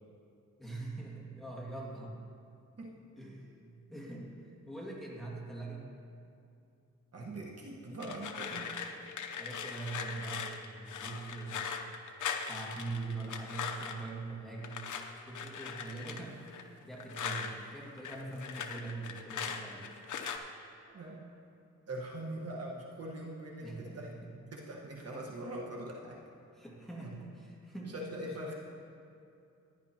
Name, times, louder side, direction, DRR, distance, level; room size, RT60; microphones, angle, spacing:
voice 1, 0.6-2.2 3.2-5.9 9.4-11.8 12.5-14.8 15.3-19.8 23.6-24.3 26.5-27.9, right 3 dB, ahead, -5 dB, 2.1 m, -43 dB
voice 2, 7.1-8.7 20.9-21.2 21.9-24.1 24.5-26.2 27.8-28.5, right 1 dB, 50° right, -2 dB, 1.3 m, -42 dB
sound 1, 8.0-14.1 14.6-17.5 17.8-20.4, left 6 dB, 75° left, 0.8 m, -40 dB
15.0 x 10.5 x 2.9 m, 2.6 s
wide cardioid pair, 110°, 30 cm